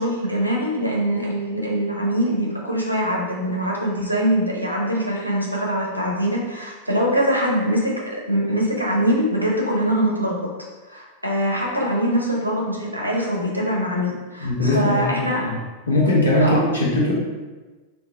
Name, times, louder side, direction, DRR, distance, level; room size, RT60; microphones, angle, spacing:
voice 1, 0.0-10.4 10.9-15.5 16.4-16.6, equal, 90° right, -3 dB, 0.6 m, -23 dB
voice 2, 14.4-15.6 15.9-17.1, left 1 dB, 75° left, -5 dB, 0.9 m, -20 dB
2.9 x 2.3 x 3.6 m, 1.3 s
figure-of-eight pair, 90°, 0 cm